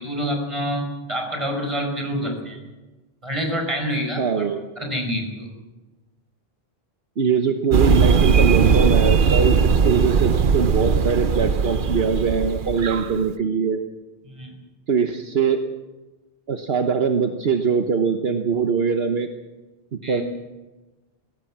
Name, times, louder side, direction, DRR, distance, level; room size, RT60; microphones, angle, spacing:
voice 1, 0.0-2.6 3.2-4.2 4.8-5.5 14.3-14.5 20.0-20.2, equal, 30° right, 3 dB, 5.1 m, -27 dB
voice 2, 4.2-4.6 7.2-13.8 14.9-15.6 16.5-19.3 19.9-20.2, right 6 dB, 75° right, 6 dB, 1.3 m, -22 dB
sound 1, 7.7-13.2, right 6 dB, 55° right, 0.9 m, -19 dB
21.5 x 17.5 x 7.5 m, 1.1 s
omnidirectional pair, 1.0 m